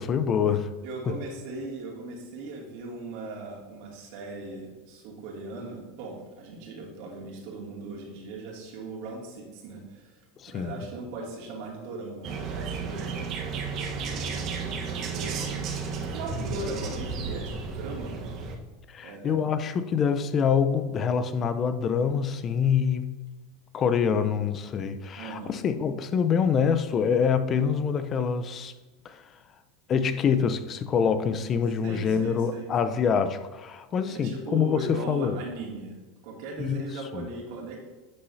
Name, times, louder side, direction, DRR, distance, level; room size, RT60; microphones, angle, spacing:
voice 1, 0.0-0.7 10.4-10.8 18.9-23.2 23.7-28.7 29.0-29.2 29.9-35.4 36.6-36.9 37.1-37.3, left 6 dB, 35° left, 0.7 m, -25 dB
voice 2, 0.8-10.2 10.5-13.3 14.1-15.8 16.0-18.2 19.0-19.4 25.2-25.6 31.8-32.7 34.1-36.0 36.2-37.9, right 2 dB, 65° right, 2.6 m, -38 dB
sound 1, 12.2-18.6, right 5 dB, 50° right, 1.2 m, -33 dB
11.0 x 6.8 x 2.8 m
hypercardioid pair, 100°, 0 cm